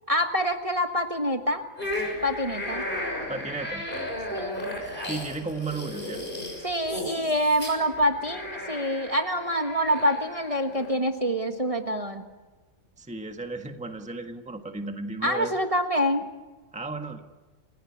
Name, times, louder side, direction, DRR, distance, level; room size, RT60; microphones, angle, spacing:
voice 1, 0.1-1.6 2.2-2.8 4.3-4.6 6.6-12.2 15.2-16.2, equal, 25° right, 4 dB, 1.6 m, -26 dB
sound 1, 1.8-10.9, left 1 dB, 35° left, 6.7 m, -35 dB
voice 2, 3.3-3.9 5.0-6.2 13.0-15.6 16.7-17.2, right 3 dB, 5° right, 5 dB, 1.5 m, -34 dB
29.0 x 17.0 x 9.9 m, 1.2 s
omnidirectional pair, 1.4 m